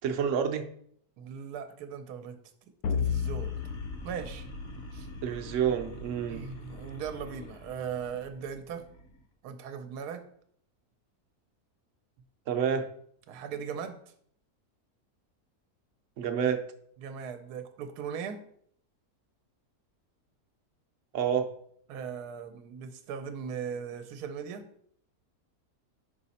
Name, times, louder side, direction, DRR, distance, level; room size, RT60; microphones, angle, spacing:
voice 1, 0.0-0.6 5.2-6.4 12.5-12.9 16.2-16.6 21.1-21.5, right 8 dB, 65° right, 7 dB, 0.9 m, -28 dB
voice 2, 1.2-2.4 2.9-3.5 4.0-4.5 4.9-5.1 6.3-8.8 9.4-10.3 13.3-14.0 17.0-18.4 21.9-24.7, right 7 dB, 90° right, 8 dB, 1.1 m, -38 dB
sound 1, 2.8-5.4, left 8 dB, 75° left, 1.2 m, -34 dB
sound 2, 2.9-9.2, left 1 dB, 50° left, 0.9 m, -44 dB
5.4 x 4.9 x 4.1 m, 0.65 s
omnidirectional pair, 1.6 m